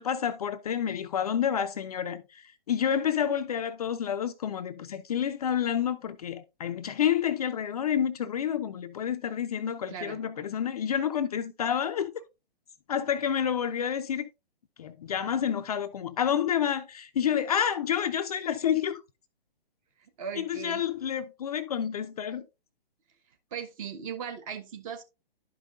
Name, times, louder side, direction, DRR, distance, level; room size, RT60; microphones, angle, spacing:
voice 1, 0.0-12.1 12.9-14.3 14.8-19.0 20.4-22.4, left 9 dB, 40° left, 0.5 m, -29 dB
voice 2, 9.9-10.2 20.2-20.8 23.5-25.0, right 7 dB, 35° right, 1.1 m, -38 dB
11.5 x 5.3 x 2.4 m
figure-of-eight pair, 125°, 30 cm